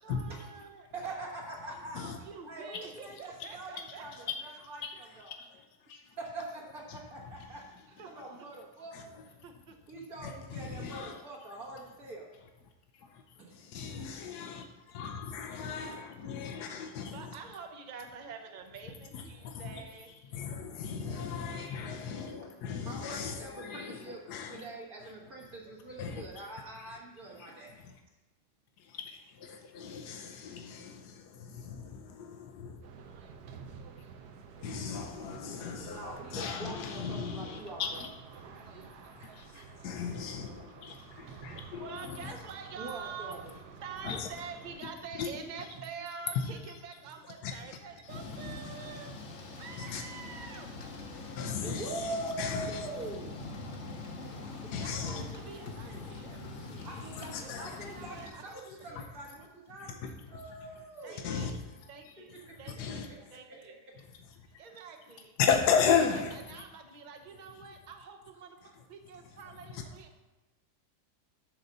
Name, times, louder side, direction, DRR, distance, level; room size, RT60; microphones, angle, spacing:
voice 1, 0.0-0.9 2.0-4.3 7.9-8.1 8.4-8.5 9.4-9.8 16.8-20.4 41.3-49.2 49.6-50.7 54.7-59.0 61.0-61.5 61.9-62.3 62.6-63.1 63.3-63.7 64.6-65.3 66.0-70.2, right 6 dB, 35° right, 5 dB, 0.7 m, -47 dB
voice 2, 0.9-2.0 2.5-4.1 4.4-5.3 6.2-7.6 8.1-9.2 9.9-12.3 13.4-13.6 21.1-21.2 22.8-24.2 24.5-27.7 35.5-35.6 35.9-38.0 39.2-39.3 39.5-39.6 40.9-41.0 42.8-43.5 51.6-53.4 56.9-59.9 60.3-61.3 62.9-63.0, right 2 dB, 65° right, -4 dB, 2.0 m, -43 dB
voice 3, 4.6-4.9 5.3-6.1 6.9-7.0 8.9-9.1 10.2-11.2 13.0-13.2 13.5-17.3 19.1-19.8 20.3-24.7 25.9-26.2 26.9-27.0 27.3-27.5 27.8-27.9 28.8-32.8 34.6-38.1 38.5-42.4 44.0-44.3 45.2-45.3 46.3-46.5 47.4-47.8 49.8-50.0 51.1-52.9 54.2-55.3 56.8-56.9 57.1-57.8 58.9-59.0 59.8-60.7 61.1-61.5 62.0-62.1 62.8-63.1 64.3-64.4 65.4-66.6 69.7-69.8, left 6 dB, 80° left, 4 dB, 1.4 m, -36 dB
sound 1, 32.8-44.8, right 6 dB, 80° right, 1.3 m, -50 dB
Thunder / Rain, 48.1-58.3, left 3 dB, 50° left, 1.2 m, -43 dB
11.0 x 4.0 x 6.6 m, 1.1 s
omnidirectional pair, 1.7 m